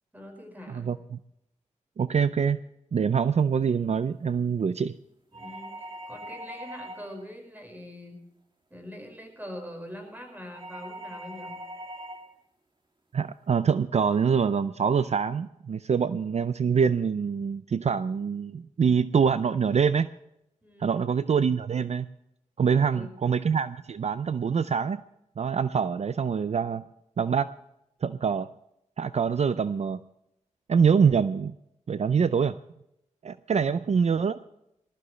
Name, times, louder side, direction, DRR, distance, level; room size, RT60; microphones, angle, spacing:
voice 1, 0.1-0.9 5.3-8.2 8.7-11.6 20.6-21.2 22.6-23.2 33.5-33.7, equal, 15° right, 4 dB, 5.3 m, -43 dB
voice 2, 0.7-1.2 2.0-2.6 2.9-4.9 13.1-20.1 20.8-22.1 22.6-25.0 25.4-26.8 27.2-27.5 28.0-28.5 29.0-30.0 30.7-31.6 31.9-32.5 33.2-34.4, right 6 dB, 60° right, 13 dB, 0.5 m, -25 dB
sound 1, 5.3-7.3 10.5-12.3, right 1 dB, 40° right, 2.4 m, -41 dB
20.5 x 13.5 x 3.2 m, 0.80 s
wide cardioid pair, 75°, 13 cm